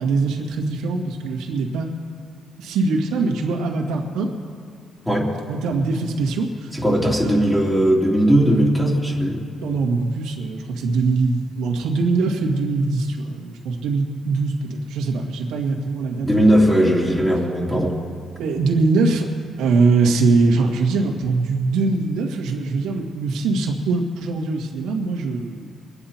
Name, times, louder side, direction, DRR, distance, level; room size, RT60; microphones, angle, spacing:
voice 1, 0.0-1.9 2.6-4.3 5.5-6.7 7.2-7.4 9.6-16.5 18.4-19.3 19.6-25.7, right 3 dB, 90° right, 1 dB, 2.0 m, -22 dB
voice 2, 6.7-9.4 16.2-18.0, equal, 10° left, -4 dB, 3.3 m, -18 dB
24.0 x 9.9 x 4.4 m, 2.4 s
cardioid pair, 90°, 0 cm